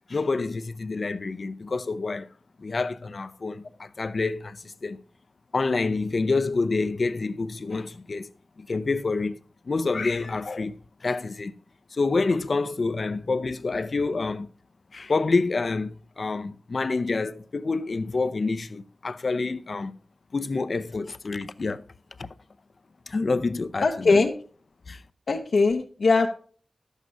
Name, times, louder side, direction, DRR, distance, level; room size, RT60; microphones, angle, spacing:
voice 1, 0.1-2.3 2.6-5.0 5.5-8.3 8.6-9.4 9.7-10.8 11.0-11.5 11.9-14.5 14.9-19.9 20.3-21.8 22.2-22.3 23.1-24.2 24.9-25.0, left 3 dB, 55° left, 0.5 m, -27 dB
voice 2, 23.8-24.4 25.3-26.3, left 3 dB, 80° left, 0.9 m, -21 dB
11.0 x 8.1 x 2.6 m
wide cardioid pair, 80°, 0 cm